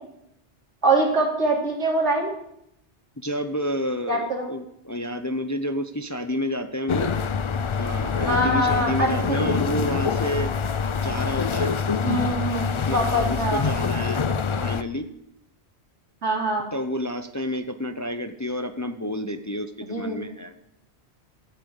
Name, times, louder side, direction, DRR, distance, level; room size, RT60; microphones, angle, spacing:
voice 1, 0.8-2.3 4.1-4.4 8.2-9.7 12.0-13.6 16.2-16.7 19.9-20.2, right 1 dB, 80° right, -1 dB, 3.4 m, -24 dB
voice 2, 3.2-7.1 7.8-10.5 11.0-11.7 12.9-14.2 14.6-15.1 16.7-20.5, left 1 dB, 20° left, 7 dB, 0.7 m, -29 dB
sound 1, 6.9-14.8, left 5 dB, 50° left, 0.3 m, -25 dB
13.0 x 8.6 x 8.0 m, 0.77 s
omnidirectional pair, 1.2 m